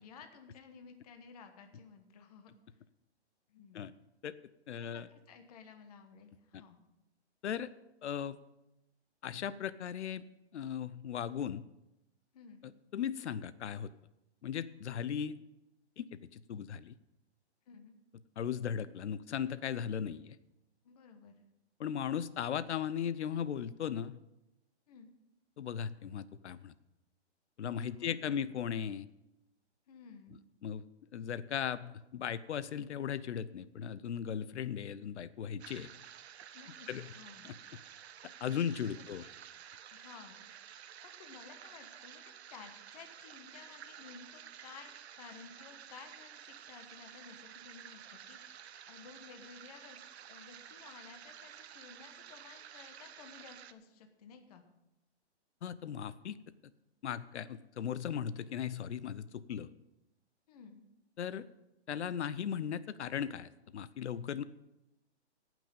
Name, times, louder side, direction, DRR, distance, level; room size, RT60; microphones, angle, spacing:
voice 1, 0.0-2.5 3.5-3.9 4.8-6.8 12.3-12.6 17.7-18.0 20.8-21.3 24.9-25.1 27.9-28.4 29.9-30.4 36.5-37.5 38.9-39.3 39.9-40.5 40.8-42.2 42.5-50.0 50.3-54.6 60.5-60.9, left 5 dB, 35° left, 6 dB, 1.3 m, -55 dB
voice 2, 4.7-5.1 6.5-6.6 7.4-7.7 8.0-8.4 9.2-10.2 10.5-11.6 12.6-13.9 14.4-15.3 16.0-16.1 16.3-16.9 18.4-20.4 21.8-24.2 25.6-26.7 27.6-29.1 30.6-30.8 31.1-35.9 36.9-37.1 37.4-37.5 38.4-39.2 55.6-56.4 57.0-59.7 61.2-61.4 61.9-64.4, left 8 dB, 75° left, 16 dB, 0.7 m, -37 dB
sound 1, 35.6-53.7, right 9 dB, 65° right, 0.7 m, -52 dB
17.5 x 6.1 x 5.4 m, 0.91 s
hypercardioid pair, 160°, 34 cm